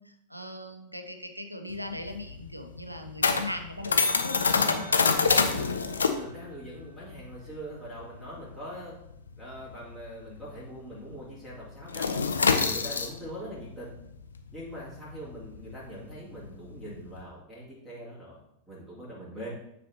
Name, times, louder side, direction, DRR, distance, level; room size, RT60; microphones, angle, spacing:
voice 1, 0.0-4.9, left 1 dB, 90° right, 7 dB, 0.6 m, -39 dB
sound 1, 1.7-10.7 10.9-11.2 11.5-17.2, left 5 dB, 75° left, 0.5 m, -27 dB
voice 2, 5.2-5.7 6.2-8.9 9.4-12.2 12.6-13.9 14.5-18.4 18.7-19.5, right 1 dB, 5° left, -10 dB, 2.6 m, -42 dB
9.4 x 4.2 x 2.8 m, 0.78 s
figure-of-eight pair, 90°, 0 cm